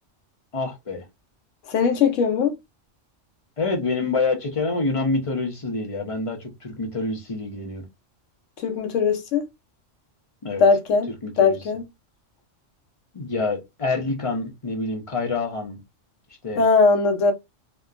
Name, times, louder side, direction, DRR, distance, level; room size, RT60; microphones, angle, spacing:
voice 1, 0.5-1.0 3.6-7.8 10.4-10.6 11.2-11.6 13.1-15.8 16.4-16.6, left 3 dB, 35° left, 0.6 m, -27 dB
voice 2, 1.7-2.5 8.6-9.4 10.6-11.1 11.4-11.8 16.6-17.3, left 5 dB, 80° left, 1.0 m, -19 dB
2.8 x 2.1 x 2.3 m
omnidirectional pair, 1.3 m